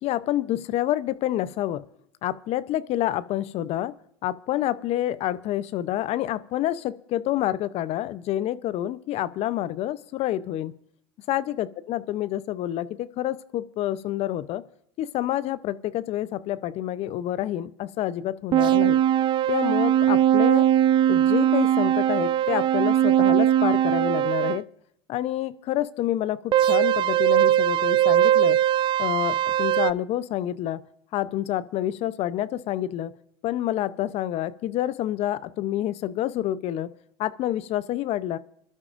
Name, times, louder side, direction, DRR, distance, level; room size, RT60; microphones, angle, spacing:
voice 1, 0.0-1.8 2.2-3.9 4.2-10.7 11.3-14.6 15.0-19.0 19.5-20.7 21.1-24.6 25.1-28.6 29.0-30.8 31.1-33.1 33.4-36.9 37.2-38.4, left 13 dB, 50° left, 16 dB, 0.7 m, -28 dB
sound 1, 18.5-24.6 26.5-29.9, right 11 dB, 35° right, 0.4 m, -20 dB
25.5 x 12.0 x 2.6 m, 0.72 s
hypercardioid pair, 85°, 14 cm